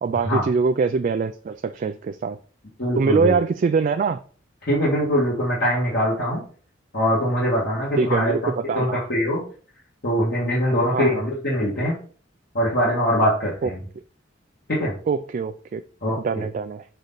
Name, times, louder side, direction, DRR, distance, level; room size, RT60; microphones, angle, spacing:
voice 1, 0.0-2.4 3.0-4.2 8.0-9.0 10.9-11.1 13.6-13.7 15.1-15.8 16.2-16.9, right 5 dB, 45° right, 0.3 m, -23 dB
voice 2, 2.8-3.3 4.7-6.4 6.9-9.4 10.0-11.9 12.5-13.8 14.7-14.9 16.0-16.2, equal, 55° left, 1.9 m, -22 dB
6.7 x 4.1 x 3.9 m
head